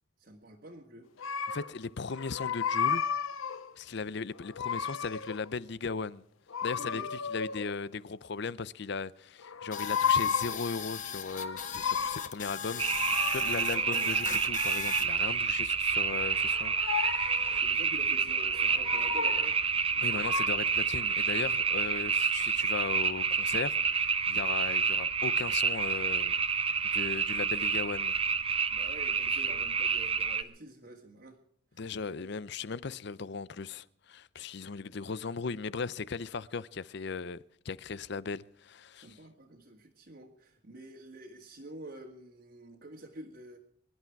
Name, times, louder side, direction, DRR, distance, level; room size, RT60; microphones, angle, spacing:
voice 1, 0.2-1.1 6.8-7.1 13.9-14.4 17.6-19.7 19.9-20.2 28.7-31.4 32.1-32.3 39.0-43.6, right 1 dB, 50° right, 1.9 m, -48 dB
sound 1, 1.2-1.8 2.1-3.7 4.3-5.5 6.5-7.8 9.4-10.7 11.1-12.4 12.8-14.1 16.0-17.6 18.4-19.6 20.1-20.5, left 6 dB, 85° left, 0.8 m, -33 dB
voice 2, 1.5-3.0 3.8-6.2 6.6-7.0 7.3-17.6 20.0-26.3 26.9-28.2 31.8-39.2, left 4 dB, 55° left, 0.6 m, -37 dB
sound 2, 9.7-15.1, left 8 dB, 40° left, 1.1 m, -39 dB
sound 3, 12.8-30.4, right 5 dB, 30° right, 0.8 m, -29 dB
24.5 x 11.5 x 4.7 m
head